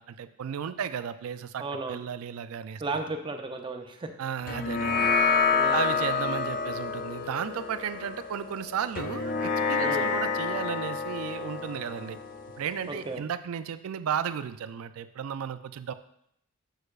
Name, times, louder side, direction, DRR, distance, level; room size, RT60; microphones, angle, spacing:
voice 1, 0.0-1.6 1.9-2.8 4.2-5.1 5.7-12.2 12.6-15.9, right 8 dB, 70° right, 12 dB, 0.4 m, -34 dB
voice 2, 1.6-2.0 2.8-4.1 5.5-5.9 9.8-10.1 12.9-13.2, right 2 dB, 25° right, 4 dB, 0.5 m, -34 dB
sound 1, 4.5-13.2, left 5 dB, 40° left, 0.4 m, -29 dB
6.4 x 6.3 x 2.4 m, 0.74 s
head